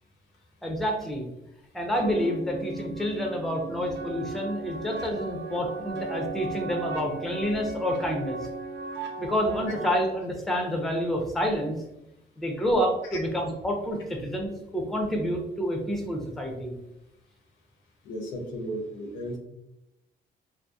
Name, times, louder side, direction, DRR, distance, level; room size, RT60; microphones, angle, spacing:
voice 1, 0.6-1.3 1.7-8.4 9.2-11.8 12.4-16.8, equal, ahead, 1 dB, 0.5 m, -28 dB
sound 1, 2.0-9.9, right 3 dB, 65° right, 0.5 m, -36 dB
voice 2, 18.0-19.4, equal, 80° left, 2 dB, 0.7 m, -34 dB
2.7 x 2.0 x 2.3 m, 0.88 s
cardioid pair, 90°, 20 cm